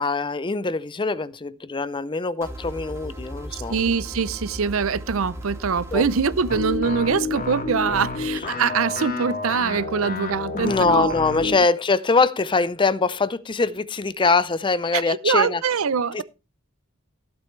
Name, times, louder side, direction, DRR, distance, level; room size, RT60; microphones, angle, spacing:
voice 1, 0.0-3.8 5.9-6.1 10.5-15.6 16.1-16.2, left 4 dB, 20° left, 0.5 m, -23 dB
sound 1, 2.4-6.8, equal, 15° right, 1.9 m, -36 dB
voice 2, 3.5-11.1 11.4-11.6 14.9-16.2, right 6 dB, 65° right, 0.6 m, -24 dB
sound 2, 6.5-11.6, left 3 dB, 40° left, 2.4 m, -29 dB
15.5 x 8.9 x 3.2 m
head